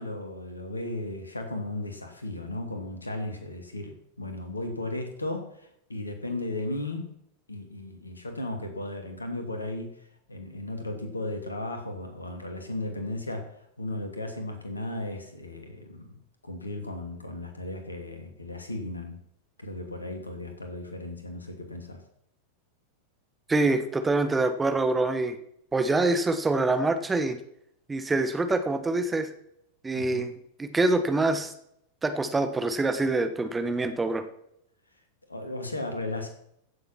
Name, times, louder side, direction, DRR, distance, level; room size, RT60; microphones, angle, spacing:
voice 1, 0.0-7.2 7.5-10.0 10.3-19.2 19.6-22.0 29.9-30.3 35.3-36.3, left 2 dB, 80° left, 5 dB, 2.7 m, -35 dB
voice 2, 23.5-25.4 25.7-27.4 27.9-29.3 29.8-30.3 30.6-31.5 32.0-34.2, right 2 dB, 10° right, 8 dB, 1.4 m, -25 dB
16.0 x 7.6 x 5.9 m, 0.74 s
figure-of-eight pair, 90°, 0 cm